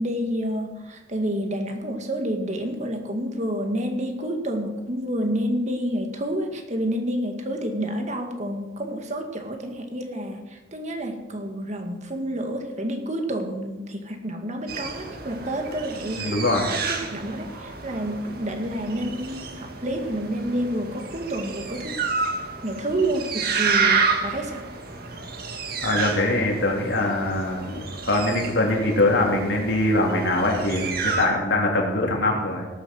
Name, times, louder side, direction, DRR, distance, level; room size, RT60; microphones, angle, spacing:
voice 1, 0.0-16.3 16.7-22.0 22.6-24.7, right 1 dB, 40° right, 4 dB, 1.9 m, -29 dB
sound 1, 14.7-31.3, right 5 dB, 55° right, 1.9 m, -30 dB
voice 2, 16.2-16.6 25.8-32.7, left 2 dB, 80° left, 0 dB, 3.4 m, -23 dB
18.0 x 8.5 x 6.4 m, 1.1 s
head